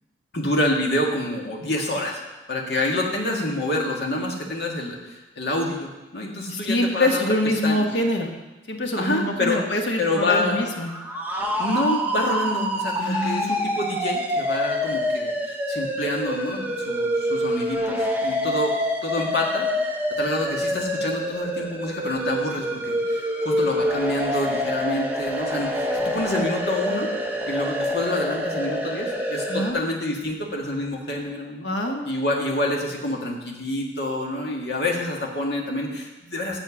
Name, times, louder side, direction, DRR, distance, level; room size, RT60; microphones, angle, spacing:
voice 1, 0.3-2.2 2.5-7.9 9.0-9.6 10.0-10.7 11.6-18.7 19.0-27.1 27.5-31.7 32.1-36.6, left 1 dB, 70° left, 0 dB, 1.8 m, -27 dB
voice 2, 6.5-8.3 8.7-10.9 13.0-13.6 29.5-29.8 31.6-32.0, left 1 dB, 90° left, 3 dB, 1.3 m, -25 dB
sound 1, 10.7-29.7, equal, 10° right, 0.8 m, -26 dB
7.3 x 7.1 x 6.9 m, 1.1 s
head